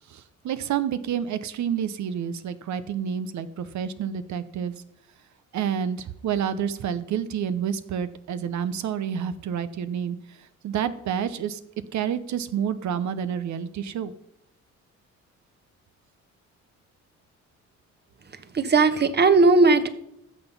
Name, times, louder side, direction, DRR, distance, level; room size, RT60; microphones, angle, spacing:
voice 1, 0.1-4.7 5.5-11.6 11.9-14.1, right 8 dB, 70° right, 12 dB, 0.9 m, -29 dB
voice 2, 18.5-19.9, right 3 dB, 35° right, 11 dB, 1.2 m, -17 dB
13.0 x 7.1 x 5.4 m, 0.78 s
cardioid pair, 90°, 30 cm